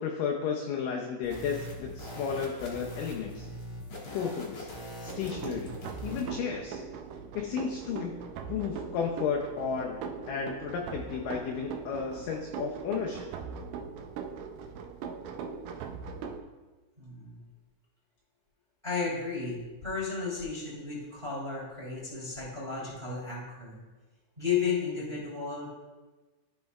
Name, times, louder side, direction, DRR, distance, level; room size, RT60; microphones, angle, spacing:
voice 1, 0.0-3.5 4.1-4.7 5.0-5.8 6.0-6.8 7.3-10.0 10.3-13.3, left 6 dB, 80° left, 1 dB, 1.9 m, -33 dB
sound 1, 1.2-6.3, equal, 50° left, 1.9 m, -42 dB
sound 2, 5.1-16.4, right 6 dB, 90° right, 1.8 m, -40 dB
voice 2, 17.0-17.4 18.8-23.8 24.4-25.7, left 5 dB, 10° right, -6 dB, 1.9 m, -33 dB
14.5 x 5.3 x 2.3 m, 1.2 s
omnidirectional pair, 4.4 m